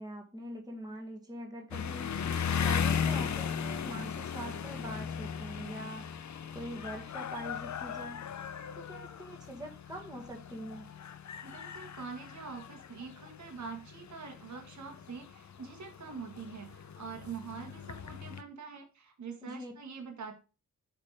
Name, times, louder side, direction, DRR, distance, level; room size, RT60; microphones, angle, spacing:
voice 1, 0.0-2.2 2.6-6.0 6.5-8.2 8.7-10.9 19.4-19.7, right 1 dB, 10° right, 1 dB, 1.6 m, -43 dB
sound 1, 1.7-18.4, left 7 dB, 50° left, 0.7 m, -37 dB
voice 2, 11.4-20.4, right 5 dB, 50° right, 3 dB, 1.5 m, -44 dB
9.0 x 3.5 x 4.7 m, 0.33 s
cardioid pair, 90°, 36 cm